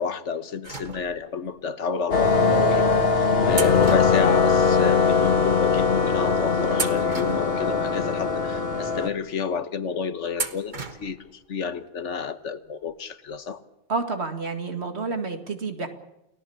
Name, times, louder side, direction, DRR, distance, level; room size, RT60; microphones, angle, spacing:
voice 1, 0.0-13.6, left 6 dB, 80° left, 12 dB, 1.6 m, -30 dB
sound 1, 0.6-1.5 2.3-2.4 3.5-5.0 5.2-5.3 6.1-6.3 6.7-8.0 8.6-8.7 10.3-11.3 11.6-11.7 12.9-13.0 13.3-13.4, right 4 dB, 40° right, 1.5 m, -35 dB
sound 2, 2.1-9.1, left 5 dB, 55° left, 1.8 m, -21 dB
voice 2, 13.9-15.9, right 4 dB, 65° right, 6 dB, 2.5 m, -29 dB
29.5 x 18.0 x 7.2 m, 0.92 s
omnidirectional pair, 1.2 m